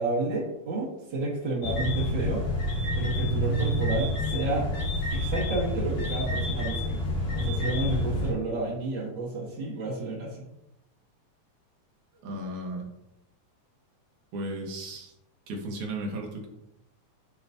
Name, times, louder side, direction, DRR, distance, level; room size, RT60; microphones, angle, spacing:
voice 1, 0.0-2.4 3.0-4.7 5.1-7.0 7.3-10.4, right 2 dB, 50° right, -6 dB, 1.5 m, -31 dB
sound 1, 1.6-8.3, left 1 dB, 80° left, 3.6 m, -28 dB
voice 2, 12.2-12.9 14.3-15.1 15.5-16.5, right 1 dB, 75° right, 1 dB, 2.6 m, -35 dB
10.5 x 4.7 x 2.7 m, 0.86 s
omnidirectional pair, 3.6 m